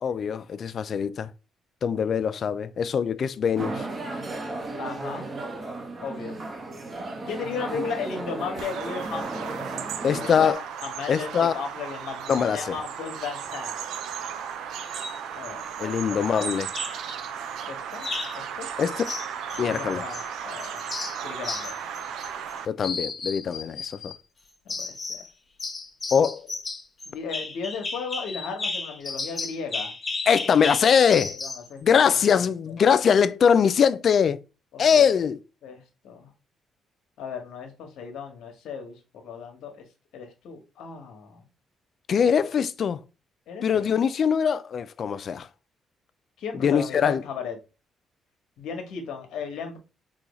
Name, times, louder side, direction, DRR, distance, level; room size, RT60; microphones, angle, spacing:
voice 1, 0.0-1.3 1.8-3.9 10.0-10.6 11.1-11.6 12.3-12.8 15.8-16.7 18.8-19.0 19.6-20.0 22.7-24.1 26.1-26.4 30.3-31.4 31.8-34.4 34.8-35.4 42.1-43.0 43.6-45.5 46.6-47.2, left 7 dB, 55° left, 0.3 m, -22 dB
sound 1, 3.6-10.5, right 2 dB, 40° right, 0.8 m, -35 dB
voice 2, 4.8-5.3 6.0-6.4 7.3-9.6 10.1-10.6 10.8-13.7 15.4-16.6 17.7-18.1 18.3-18.7 19.5-20.9 21.2-21.8 24.6-25.2 27.1-29.9 31.3-32.8 34.7-35.0 35.6-36.3 37.2-39.8 40.1-41.4 43.5-43.9 46.4-47.6 48.6-49.8, left 5 dB, 80° left, 1.0 m, -36 dB
Bird vocalization bird call bird song, 8.6-22.7, right 8 dB, 80° right, 0.3 m, -35 dB
sound 2, 14.8-15.2 16.4-17.2 18.0-18.4 19.0-20.3 20.6-22.5 22.8-24.2 24.7-25.3 25.6-31.7, left 3 dB, 30° left, 0.8 m, -34 dB
4.1 x 2.3 x 3.0 m
cardioid pair, 90°, 0 cm